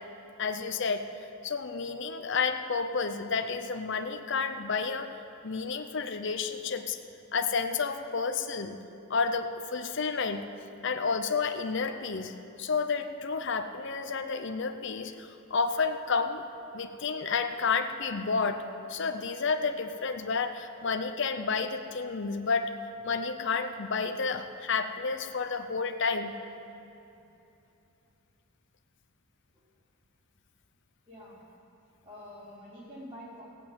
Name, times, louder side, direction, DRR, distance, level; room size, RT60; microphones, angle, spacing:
voice 1, 0.4-1.1 1.4-5.1 5.4-7.0 7.3-8.8 9.1-10.5 10.8-16.4 16.7-18.6 18.9-22.7 23.0-26.3, left 5 dB, 55° left, 7 dB, 0.7 m, -30 dB
voice 2, 31.1-31.4 32.0-33.4, equal, 25° right, -9 dB, 4.2 m, -46 dB
16.0 x 8.3 x 8.7 m, 2.9 s
head